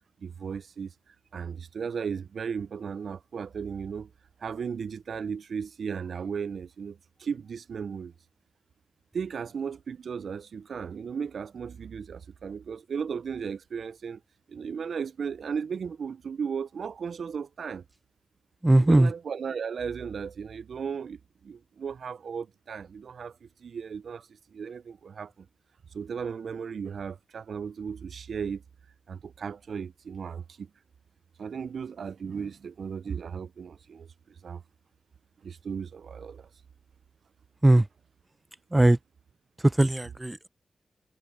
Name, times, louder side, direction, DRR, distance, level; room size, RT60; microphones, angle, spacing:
voice 1, 0.2-4.1 4.4-8.1 9.1-14.2 14.5-17.8 18.8-25.5 25.9-28.6 29.1-30.7 31.4-34.6 35.4-36.5, right 6 dB, 75° right, 0.3 m, -36 dB
voice 2, 18.6-19.1 37.6-37.9 38.7-39.0 39.6-40.5, right 1 dB, 20° right, 0.5 m, -19 dB
cardioid pair, 60°, 0 cm